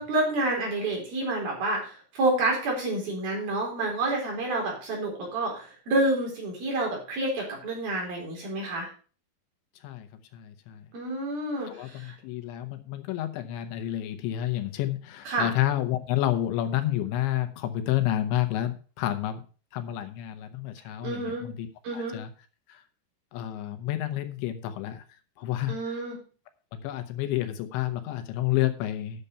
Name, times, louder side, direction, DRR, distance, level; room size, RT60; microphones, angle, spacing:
voice 1, 0.0-8.9 10.9-12.1 15.3-15.5 21.0-21.5 21.8-22.2 25.7-26.2, right 2 dB, 55° right, -2 dB, 5.9 m, -29 dB
voice 2, 10.3-10.8 11.7-19.4 19.7-21.7 21.9-22.3 22.7-22.8 23.3-25.0 25.4-25.7 26.7-29.3, left 13 dB, 80° left, 8 dB, 3.3 m, -30 dB
9.9 x 6.7 x 5.6 m, 0.38 s
omnidirectional pair, 5.2 m